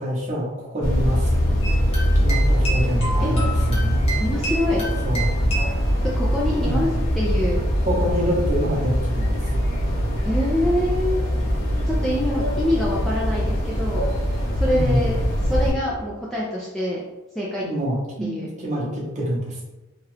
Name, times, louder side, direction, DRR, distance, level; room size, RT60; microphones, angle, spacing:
voice 1, 0.0-1.8 2.1-4.0 5.0-5.3 6.6-7.1 7.8-9.7 14.7-15.1 17.6-19.6, equal, 35° right, -4 dB, 0.8 m, -26 dB
sound 1, 0.8-15.7, equal, 60° left, 1.0 m, -22 dB
sound 2, 1.6-5.8, right 2 dB, 30° left, 0.7 m, -31 dB
voice 2, 4.2-4.9 6.0-6.9 7.1-7.6 10.2-11.3 11.9-17.0 17.4-17.7 18.2-18.5, left 1 dB, ahead, -6 dB, 0.3 m, -25 dB
2.8 x 2.3 x 3.2 m, 1.1 s
head